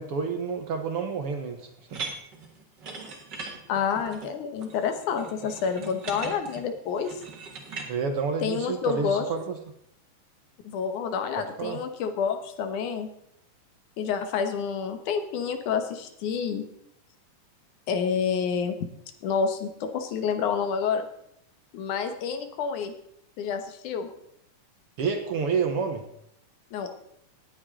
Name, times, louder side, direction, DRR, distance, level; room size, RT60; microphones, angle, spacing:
voice 1, 0.0-2.0 7.8-9.6 11.4-11.8 25.0-26.0, right 5 dB, 60° right, 5 dB, 1.7 m, -29 dB
sound 1, 1.9-7.9, right 4 dB, 40° right, 1.9 m, -40 dB
voice 2, 3.7-7.2 8.4-9.3 10.6-13.1 14.0-16.7 17.9-18.8 19.2-21.1 21.7-22.9 23.4-24.1 26.7-27.0, left 6 dB, 70° left, 8 dB, 2.6 m, -28 dB
18.5 x 8.5 x 3.7 m, 0.74 s
omnidirectional pair, 3.7 m